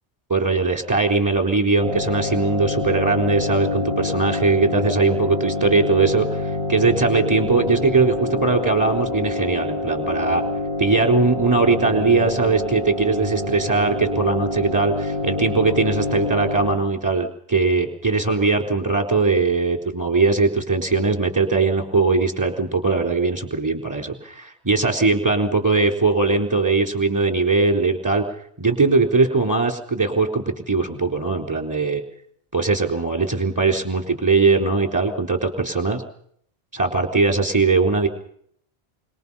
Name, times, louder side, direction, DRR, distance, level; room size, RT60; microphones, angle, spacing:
voice 1, 0.3-10.4 10.8-28.2 28.6-32.0 32.5-36.0 36.7-38.1, right 3 dB, 15° right, 4 dB, 3.9 m, -20 dB
sound 1, 1.8-16.8, left 2 dB, 55° left, 2.5 m, -26 dB
25.5 x 23.0 x 5.6 m, 0.65 s
omnidirectional pair, 1.1 m